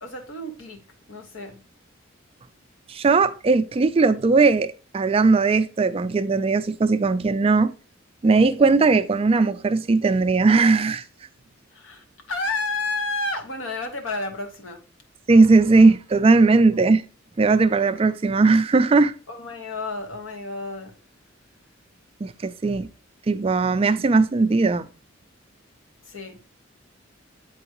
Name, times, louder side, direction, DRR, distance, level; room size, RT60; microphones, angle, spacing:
voice 1, 0.0-0.8 1.1-1.6 11.7-14.8 19.3-20.9 26.0-26.5, left 3 dB, 80° left, 1.1 m, -31 dB
voice 2, 2.9-7.7 8.2-11.0 15.3-17.0 17.4-19.1 22.2-22.9 23.3-24.9, right 3 dB, 30° right, 0.3 m, -18 dB
7.7 x 4.6 x 2.9 m
head